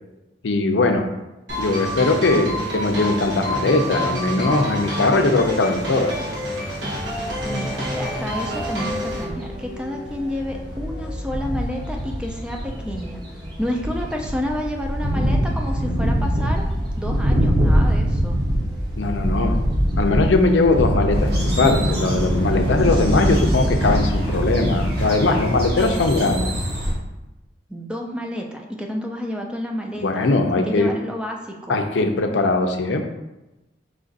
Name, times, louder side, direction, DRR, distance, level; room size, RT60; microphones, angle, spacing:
voice 1, 0.4-1.0 1.6-6.1 19.0-19.6 20.0-26.5 30.0-30.9 31.7-33.0, left 3 dB, 80° left, 5 dB, 0.5 m, -20 dB
sound 1, 1.5-9.2, equal, 75° right, 1.2 m, -27 dB
sound 2, 6.9-25.0, equal, 25° right, 0.8 m, -24 dB
voice 2, 7.4-13.2 13.6-16.6 17.0-18.4 27.7-30.3 30.6-31.8, left 1 dB, 5° right, 1 dB, 0.4 m, -30 dB
sound 3, 21.1-26.9, equal, 60° right, 1.2 m, -27 dB
4.9 x 2.5 x 3.9 m, 1.0 s
head